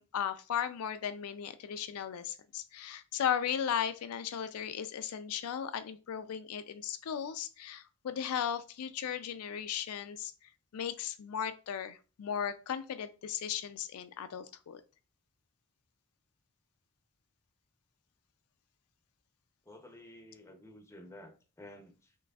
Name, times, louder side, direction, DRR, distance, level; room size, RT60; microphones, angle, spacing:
voice 1, 0.0-14.8, left 8 dB, 70° left, 11 dB, 0.4 m, -36 dB
voice 2, 19.6-22.2, left 1 dB, 10° left, 5 dB, 0.6 m, -52 dB
5.8 x 3.1 x 2.3 m, 0.34 s
head